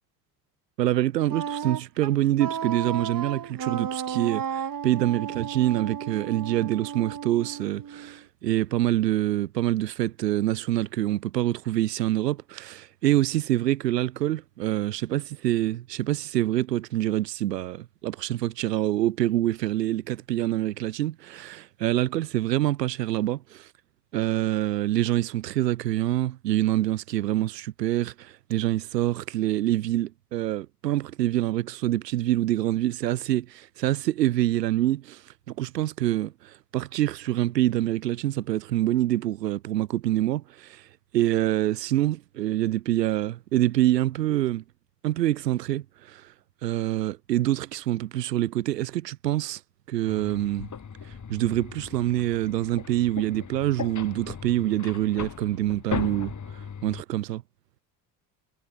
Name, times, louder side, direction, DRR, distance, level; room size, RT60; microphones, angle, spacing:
voice 1, 0.8-23.7 24.1-35.2 35.5-40.8 41.1-44.6 45.0-46.3 46.6-49.6 49.9-50.7 51.3-56.3 56.8-57.4, right 14 dB, 85° right, 2.0 m, -26 dB
Wind instrument woodwind instrument, 1.3-8.2, right 8 dB, 45° right, 7.2 m, -34 dB
sound 1, 50.1-57.0, left 6 dB, 35° left, 6.0 m, -38 dB
hypercardioid pair, 60°, 48 cm